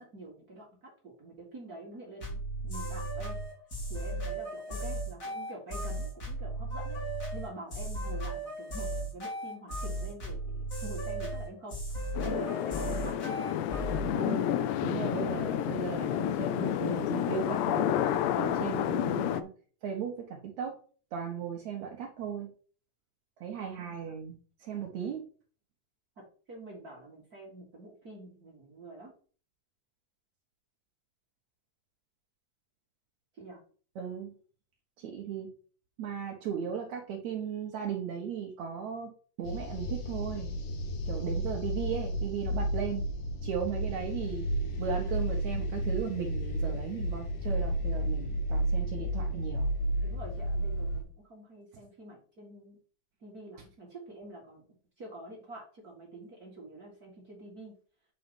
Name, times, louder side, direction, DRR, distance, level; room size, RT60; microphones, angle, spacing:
voice 1, 0.0-3.4 3.9-7.0 7.3-11.8 12.2-13.3 23.8-24.0 26.2-29.1 33.3-33.6 50.0-52.8 53.2-57.7, right 1 dB, 50° right, -3 dB, 1.1 m, -47 dB
sound 1, 2.2-14.1, right 1 dB, 30° left, 1.8 m, -36 dB
sound 2, 12.1-19.4, left 11 dB, 90° left, 2.8 m, -30 dB
voice 2, 14.1-14.5 14.8-19.5 19.8-20.8 21.1-22.5 23.4-25.2 34.0-34.3 35.0-35.5 36.0-39.1 39.4-40.5 41.0-43.0 43.4-44.5 44.8-49.7, right 7 dB, 75° right, 0 dB, 1.6 m, -36 dB
sound 3, 39.4-51.0, equal, 65° left, 2.3 m, -32 dB
9.2 x 4.0 x 5.3 m, 0.42 s
omnidirectional pair, 4.8 m